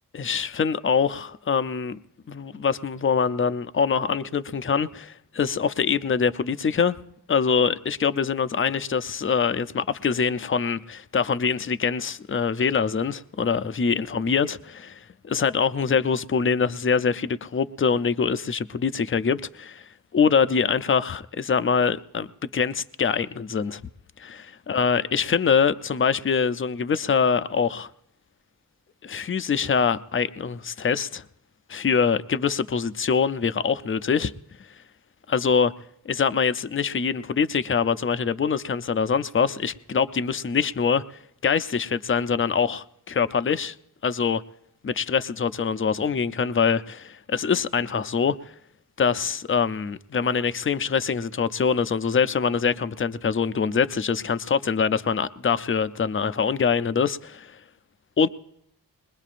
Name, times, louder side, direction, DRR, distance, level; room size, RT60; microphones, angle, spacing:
voice 1, 0.1-2.0 2.3-7.0 7.3-19.9 20.1-23.8 24.2-27.9 29.0-31.2 31.7-34.3 35.3-35.7 36.1-41.0 41.4-43.7 44.0-44.4 44.8-48.4 49.0-57.6 58.2-58.3, left 6 dB, 30° left, 0.5 m, -24 dB
21.0 x 20.5 x 2.5 m
wide cardioid pair, 65°, 42 cm